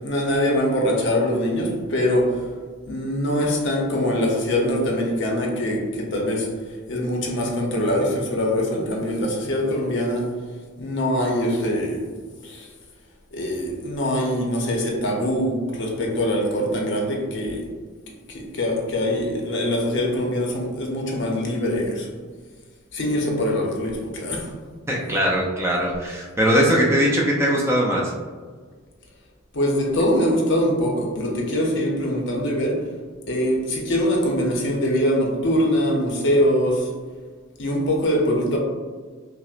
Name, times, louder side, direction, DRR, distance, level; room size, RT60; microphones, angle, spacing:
voice 1, 0.0-2.4 2.9-6.5 6.9-10.3 10.8-12.0 12.4-12.7 13.3-17.7 18.3-22.1 22.9-24.5 29.5-32.8 33.3-36.9 37.6-38.6, equal, 60° left, -1 dB, 0.7 m, -23 dB
voice 2, 24.9-28.1, equal, 10° right, -3 dB, 0.4 m, -20 dB
5.8 x 2.1 x 2.4 m, 1.5 s
head